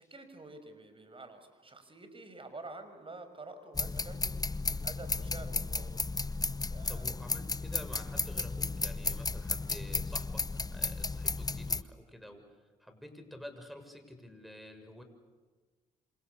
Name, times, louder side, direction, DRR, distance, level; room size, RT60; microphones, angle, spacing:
voice 1, 0.0-4.3 4.7-6.1 6.7-7.1, right 2 dB, 30° right, 9 dB, 5.7 m, -48 dB
sound 1, 3.7-11.8, left 3 dB, 20° left, 1.0 m, -34 dB
voice 2, 6.9-12.5 12.8-15.0, left 1 dB, ahead, 5 dB, 6.9 m, -49 dB
27.5 x 27.0 x 7.0 m, 1.4 s
hypercardioid pair, 50°, 18 cm